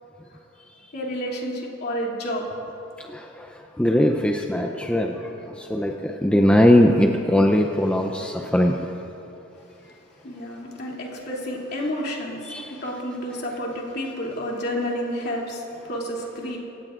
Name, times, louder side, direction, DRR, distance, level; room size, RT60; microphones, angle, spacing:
voice 1, 0.9-2.5 10.2-16.6, equal, 50° left, -3 dB, 2.8 m, -30 dB
voice 2, 3.1-3.5 3.8-8.9 12.5-12.7, left 1 dB, 5° left, 2 dB, 0.6 m, -20 dB
26.5 x 16.5 x 2.5 m, 2.9 s
head